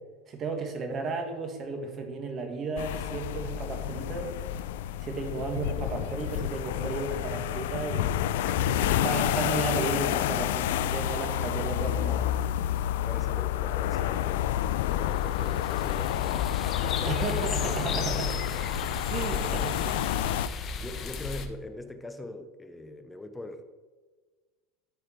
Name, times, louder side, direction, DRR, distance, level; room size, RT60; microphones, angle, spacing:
voice 1, 0.3-4.3 5.0-8.2 8.7-12.3 17.1-18.3 19.1-20.1, right 4 dB, 35° right, 4 dB, 1.8 m, -34 dB
sound 1, 2.8-20.5, left 12 dB, 85° left, 0.3 m, -29 dB
voice 2, 8.4-8.9 13.0-17.3 17.6-19.1 20.8-23.7, left 2 dB, 10° left, 9 dB, 0.6 m, -42 dB
sound 2, 14.4-21.5, left 5 dB, 40° left, 0.9 m, -36 dB
13.0 x 4.9 x 4.5 m, 1.4 s
supercardioid pair, 125°, 0 cm